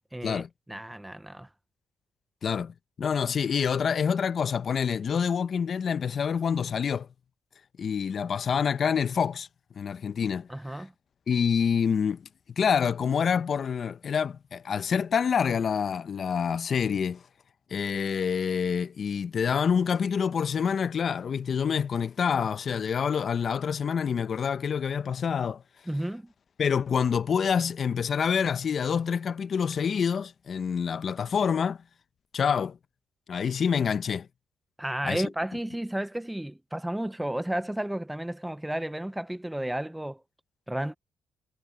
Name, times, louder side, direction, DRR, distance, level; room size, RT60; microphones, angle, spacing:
voice 1, 0.1-1.5 10.5-10.9 25.9-26.3 34.8-40.2 40.7-40.9, right 1 dB, 5° right, 0.6 m, -32 dB
voice 2, 2.4-7.1 7.8-9.5 9.8-10.5 11.3-12.3 12.6-17.2 17.7-25.6 26.6-31.8 32.3-32.8 33.3-34.3 35.0-35.2, left 7 dB, 50° left, 0.7 m, -27 dB
cardioid pair, 90°, 0 cm